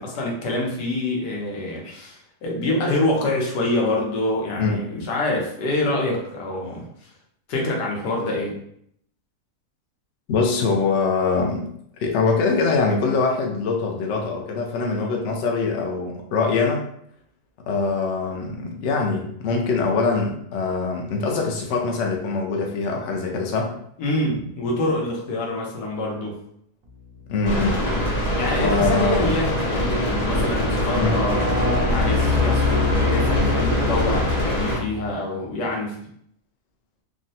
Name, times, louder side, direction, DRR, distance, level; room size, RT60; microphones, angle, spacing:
voice 1, 0.0-7.1 7.5-8.6 24.0-26.4 28.4-31.5 31.9-36.0, left 1 dB, 90° left, -1 dB, 1.4 m, -26 dB
voice 2, 4.6-5.1 10.3-11.7 12.0-16.8 17.7-23.7 27.3-27.9 28.6-29.2 30.9-31.2, left 4 dB, 65° left, 1 dB, 0.7 m, -23 dB
sound 1, 27.4-34.8, equal, 35° left, 0.7 m, -24 dB
sound 2, 28.6-35.1, left 4 dB, 70° right, 1.1 m, -26 dB
3.6 x 2.0 x 2.7 m, 0.69 s
omnidirectional pair, 1.7 m